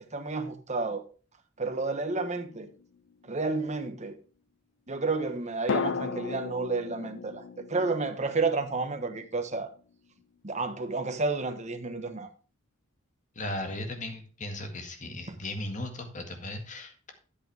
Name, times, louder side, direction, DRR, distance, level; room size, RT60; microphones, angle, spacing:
voice 1, 0.1-1.0 1.6-2.7 3.2-4.2 4.9-9.7 10.4-12.3 15.3-15.4, right 3 dB, 35° right, 1.2 m, -31 dB
sound 1, 2.1-3.3 5.7-9.7 9.9-10.0, left 5 dB, 65° left, 0.5 m, -36 dB
voice 2, 13.4-17.1, left 1 dB, 40° left, 1.9 m, -37 dB
10.0 x 8.6 x 3.4 m
head